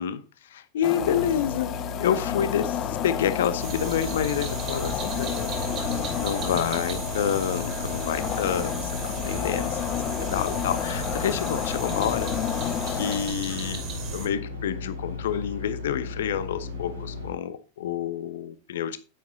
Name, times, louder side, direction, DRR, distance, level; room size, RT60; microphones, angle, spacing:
voice 1, 0.0-9.8 10.2-12.3 12.9-13.8 14.1-19.0, left 9 dB, 60° left, 0.9 m, -28 dB
sound 1, 0.8-13.3, left 11 dB, 35° left, 0.5 m, -31 dB
sound 2, 0.9-17.3, left 3 dB, 80° right, 4.5 m, -36 dB
sound 3, 3.6-14.3, right 5 dB, 35° right, 2.6 m, -36 dB
9.0 x 8.8 x 4.0 m
figure-of-eight pair, 90°, 0 cm